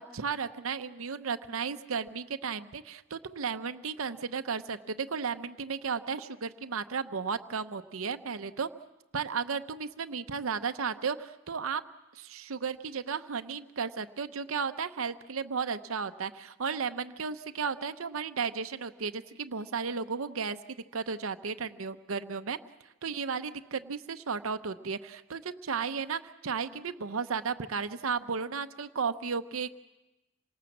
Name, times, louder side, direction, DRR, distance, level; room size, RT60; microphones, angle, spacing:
voice 1, 0.0-8.7 9.1-11.8 12.2-20.6 20.9-22.6 23.0-29.8, right 5 dB, 85° right, 9 dB, 0.8 m, -34 dB
27.0 x 19.0 x 7.2 m, 1.0 s
head